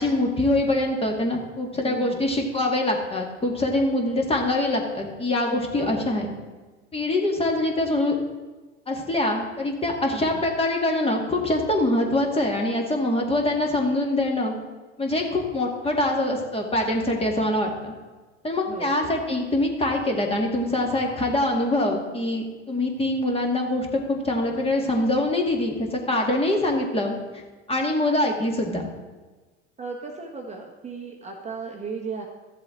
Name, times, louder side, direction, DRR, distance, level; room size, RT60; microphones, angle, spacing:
voice 1, 0.0-6.3 6.9-8.1 8.9-14.6 15.0-17.9 18.4-27.4 27.7-28.9, left 1 dB, 15° left, 1 dB, 2.0 m, -24 dB
voice 2, 1.9-2.2 5.8-6.1 10.1-10.4 18.7-19.2 29.8-32.3, right 4 dB, 20° right, 0 dB, 1.3 m, -36 dB
13.5 x 7.4 x 3.8 m, 1.3 s
hypercardioid pair, 85°, 36 cm